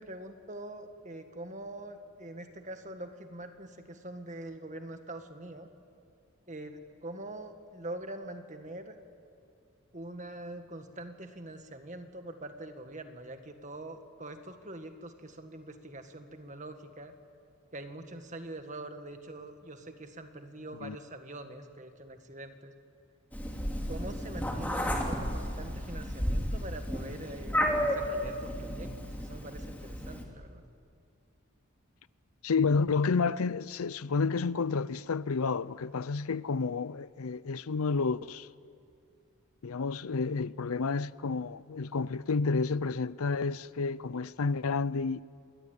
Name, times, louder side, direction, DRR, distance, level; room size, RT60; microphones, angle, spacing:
voice 1, 0.0-5.7 6.5-9.0 9.9-17.1 17.7-22.7 23.9-30.6, right 1 dB, 35° right, 1.7 m, -44 dB
Meow, 23.3-30.2, equal, 10° left, 2.6 m, -33 dB
voice 2, 32.4-38.5 39.6-45.2, left 4 dB, 80° left, 0.6 m, -30 dB
27.0 x 22.0 x 9.2 m
head